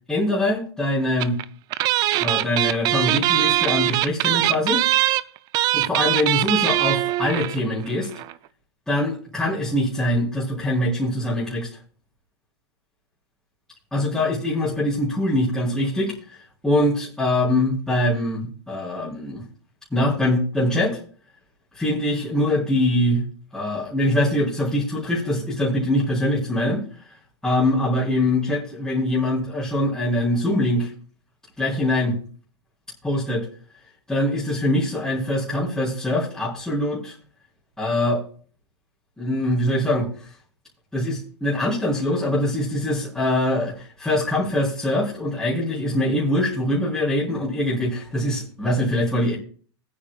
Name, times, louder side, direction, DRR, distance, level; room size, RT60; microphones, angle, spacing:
voice 1, 0.1-1.4 2.2-4.8 5.7-8.1 8.9-11.7 13.9-16.4 16.6-19.4 19.9-21.0 21.7-23.2 23.5-27.1 27.4-30.9 31.6-32.2 33.0-33.5 34.1-37.1 37.8-38.2 39.2-40.3 40.9-49.4, left 1 dB, 5° left, -10 dB, 3.9 m, -23 dB
sound 1, 1.2-1.4 1.7-7.6 7.9-8.0 8.1-8.3, right 15 dB, 30° right, 0.4 m, -21 dB
20.0 x 8.8 x 2.4 m, 0.42 s
hypercardioid pair, 145°, 14 cm